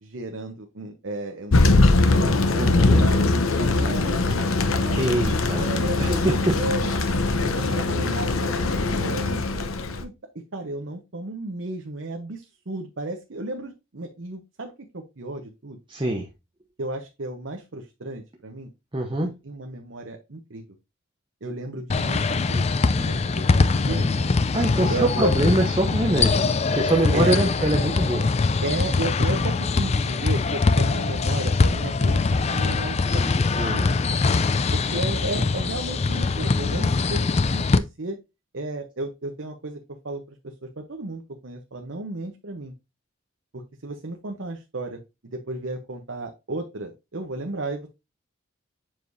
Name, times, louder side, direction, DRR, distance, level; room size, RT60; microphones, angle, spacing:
voice 1, 0.0-2.7 3.0-6.2 6.5-6.9 7.4-9.6 10.0-10.1 10.5-15.8 16.8-18.7 19.4-20.6 21.4-24.3 24.9-25.3 27.1-27.4 28.6-33.3 33.6-34.2 34.7-38.2 38.5-39.8 40.0-42.7 43.8-47.9, right 2 dB, 65° right, 0.9 m, -33 dB
Thunder, 1.5-10.0, left 2 dB, 85° left, 0.8 m, -21 dB
voice 2, 2.6-3.1 5.0-5.7 6.0-6.6 7.5-7.8 15.9-16.3 18.9-19.4 24.5-28.3 33.5-33.9, right 1 dB, 25° right, 0.9 m, -24 dB
sound 1, 21.9-37.8, left 4 dB, 30° left, 0.3 m, -22 dB
7.5 x 4.8 x 2.6 m
head